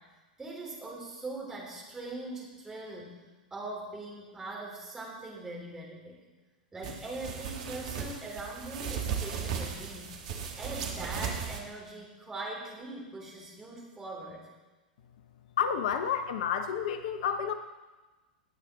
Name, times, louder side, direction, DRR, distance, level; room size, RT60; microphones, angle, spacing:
voice 1, 0.4-3.2 3.5-6.2 6.7-10.2 10.6-14.4, right 2 dB, 10° right, -3 dB, 3.7 m, -41 dB
sound 1, 6.8-11.6, right 7 dB, 50° right, 1.7 m, -36 dB
voice 2, 15.6-17.5, left 8 dB, 55° left, 9 dB, 0.7 m, -30 dB
19.0 x 8.2 x 3.9 m, 1.2 s
figure-of-eight pair, 95°, 5 cm